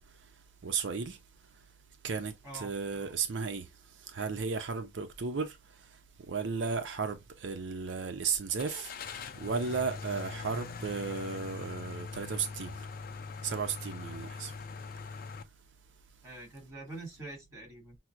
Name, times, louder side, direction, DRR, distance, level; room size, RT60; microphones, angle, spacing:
voice 1, 0.6-1.2 2.0-3.7 4.1-5.6 6.3-12.7 13.4-14.5, right 5 dB, 75° right, 0.6 m, -34 dB
Car / Engine starting, 8.6-15.4, left 5 dB, 50° left, 0.4 m, -42 dB
voice 2, 16.2-18.0, right 2 dB, 15° right, 2.3 m, -45 dB
5.8 x 2.0 x 2.4 m
head